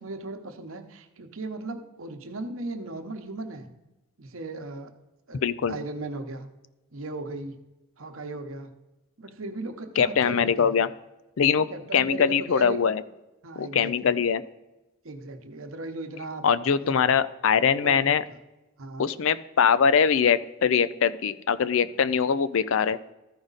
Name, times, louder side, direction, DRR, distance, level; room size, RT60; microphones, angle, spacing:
voice 1, 0.0-3.7 4.2-4.9 5.3-5.4 5.7-6.5 6.9-7.6 8.0-8.7 9.2-10.9 11.7-12.8 13.4-14.2 15.0-16.4 16.8-17.0 17.8-18.4 18.8-19.1, right 2 dB, 70° right, 6 dB, 1.0 m, -37 dB
voice 2, 5.4-5.8 10.0-10.9 11.4-13.0 13.6-14.4 16.4-18.2 19.0-23.0, left 7 dB, 65° left, 15 dB, 0.4 m, -22 dB
13.5 x 5.0 x 4.0 m, 1.0 s
head